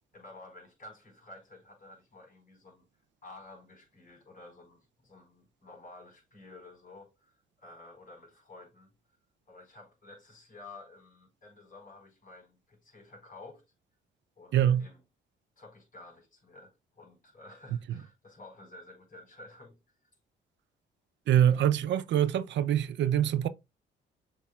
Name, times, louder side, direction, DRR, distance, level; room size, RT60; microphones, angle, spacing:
voice 1, 0.1-2.9 3.2-8.9 9.5-13.6 14.4-15.0 15.6-19.8, left 2 dB, 45° left, 4.5 m, -52 dB
voice 2, 14.5-14.9 21.3-23.5, right 10 dB, 65° right, 0.5 m, -24 dB
7.2 x 5.6 x 2.3 m
cardioid pair, 90°, 20 cm